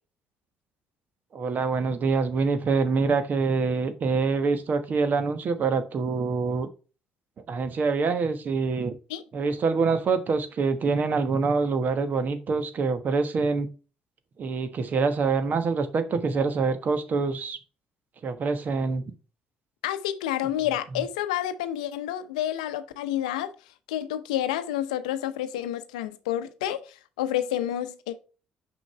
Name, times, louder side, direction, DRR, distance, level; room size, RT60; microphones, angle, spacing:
voice 1, 1.3-6.7 7.5-9.0 9.3-13.7 14.4-17.6 18.2-19.0, right 4 dB, 50° right, 1.2 m, -25 dB
voice 2, 19.8-23.5 23.9-28.1, left 12 dB, 85° left, 0.6 m, -29 dB
6.4 x 5.3 x 3.2 m
hypercardioid pair, 50°, 4 cm